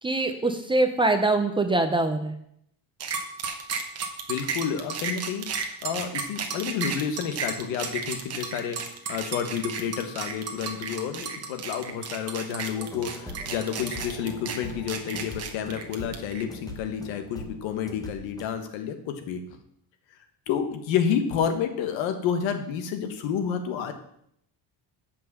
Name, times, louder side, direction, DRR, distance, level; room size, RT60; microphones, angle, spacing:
voice 1, 0.0-2.3, right 2 dB, 10° right, 5 dB, 0.4 m, -23 dB
sound 1, 3.0-16.4, right 5 dB, 35° right, 1.1 m, -33 dB
voice 2, 4.3-19.4 20.5-23.9, left 7 dB, 90° left, 7 dB, 1.4 m, -30 dB
sound 2, 12.8-18.4, left 2 dB, 10° left, 0.9 m, -42 dB
7.5 x 5.7 x 6.8 m, 0.73 s
cardioid pair, 165°, 44 cm